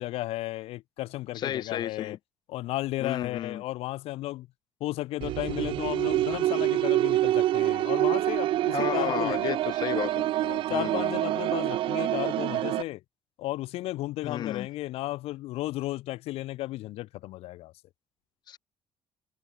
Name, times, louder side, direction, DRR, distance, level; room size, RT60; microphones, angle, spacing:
voice 1, 0.0-2.2 2.5-4.5 4.8-9.6 10.4-13.0 13.4-17.7, left 17 dB, 80° left, 5.2 m, -34 dB
voice 2, 1.3-2.2 3.0-3.6 8.7-10.3 10.7-11.2 14.2-14.7 18.5-18.6, left 11 dB, 45° left, 1.5 m, -32 dB
sound 1, 5.2-12.8, right 14 dB, 60° right, 0.9 m, -26 dB
cardioid pair, 170°, 10 cm